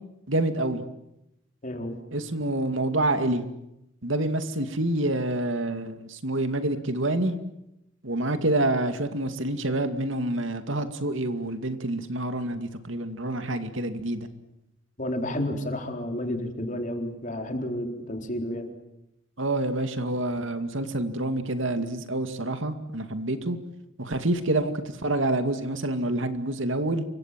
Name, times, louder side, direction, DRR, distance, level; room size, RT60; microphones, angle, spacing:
voice 1, 0.3-0.8 2.1-3.5 4.0-7.3 8.0-14.3 19.4-23.6 24.0-24.7 25.0-27.0, right 1 dB, 70° right, 8 dB, 2.4 m, -27 dB
voice 2, 1.6-2.0 15.0-18.7, left 1 dB, 40° left, 4 dB, 4.1 m, -31 dB
28.5 x 25.0 x 7.7 m, 0.85 s
head